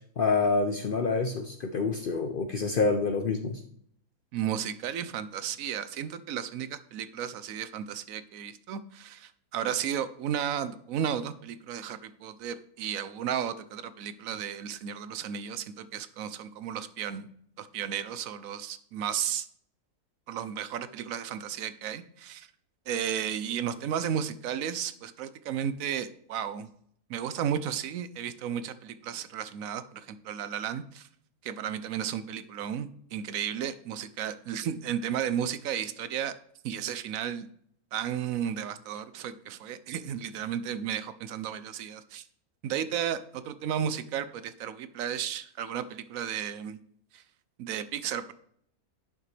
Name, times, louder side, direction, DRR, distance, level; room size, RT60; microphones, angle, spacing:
voice 1, 0.2-3.6, left 4 dB, 55° left, 6 dB, 0.6 m, -27 dB
voice 2, 4.3-17.3 17.6-19.5 20.3-22.5 22.9-26.7 27.1-31.1 31.4-36.3 36.6-37.5 37.9-42.2 42.6-46.8 47.1-47.2 47.6-48.3, right 9 dB, 75° right, 13 dB, 1.0 m, -33 dB
11.0 x 5.9 x 3.3 m, 0.65 s
omnidirectional pair, 1.5 m